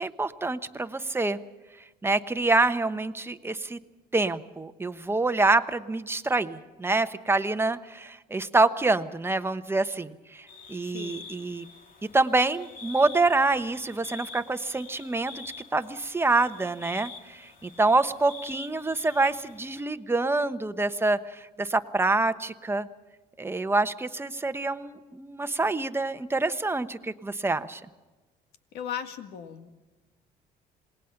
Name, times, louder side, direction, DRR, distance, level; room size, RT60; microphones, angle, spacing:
voice 1, 0.0-1.4 2.0-3.8 4.1-11.6 12.1-15.4 15.7-22.9 23.4-27.8, right 3 dB, 15° right, 10 dB, 1.1 m, -26 dB
sound 1, 10.5-19.8, left 4 dB, 55° left, 2.3 m, -46 dB
voice 2, 10.9-11.3 28.7-29.7, left 9 dB, 75° left, 8 dB, 1.9 m, -37 dB
27.5 x 19.5 x 5.9 m, 1.2 s
cardioid pair, 110°, 17 cm